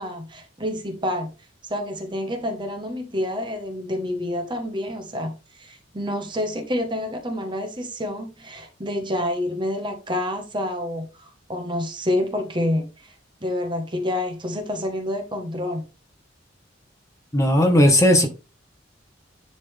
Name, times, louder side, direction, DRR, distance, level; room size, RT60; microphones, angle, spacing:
voice 1, 0.0-1.3 1.7-13.1 13.4-15.8, left 1 dB, 25° right, 1.4 m, -28 dB
voice 2, 17.3-18.3, left 1 dB, 15° left, 1.5 m, -16 dB
10.5 x 4.0 x 3.5 m
head